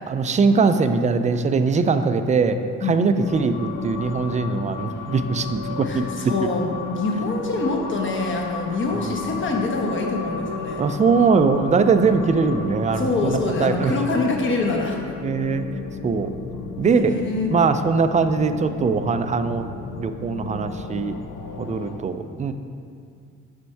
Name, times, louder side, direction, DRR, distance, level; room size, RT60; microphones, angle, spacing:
voice 1, 0.1-2.6 2.9-6.1 8.9-9.1 10.8-13.9 15.2-15.6 16.0-16.3 16.8-17.2 17.5-19.6 20.0-21.1 21.6-22.5, right 5 dB, 25° right, 9 dB, 0.4 m, -21 dB
sound 1, 3.2-22.0, left 5 dB, 90° left, 0.6 m, -33 dB
voice 2, 5.8-10.8 12.9-15.0 16.8-17.5, left 3 dB, 40° left, 1 dB, 1.1 m, -25 dB
7.0 x 4.4 x 4.6 m, 2.3 s
cardioid pair, 90°, 30 cm